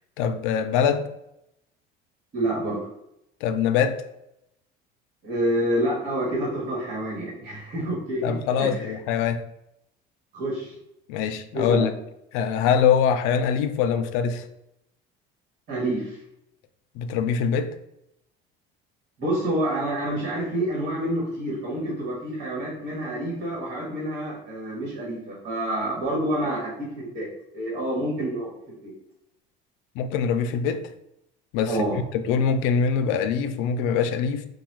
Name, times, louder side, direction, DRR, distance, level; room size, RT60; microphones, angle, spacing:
voice 1, 0.2-1.1 3.4-4.0 8.2-9.4 11.1-11.9 12.3-14.5 16.9-17.7 30.0-30.8 31.5-31.8 32.1-34.5, left 7 dB, 85° left, 0.5 m, -23 dB
voice 2, 2.3-2.8 5.2-8.9 10.3-10.7 11.5-11.9 15.7-16.2 19.2-27.3 27.5-28.9 31.7-32.0, right 1 dB, 45° right, 1.5 m, -28 dB
3.9 x 2.3 x 4.6 m
cardioid pair, 160°, 20 cm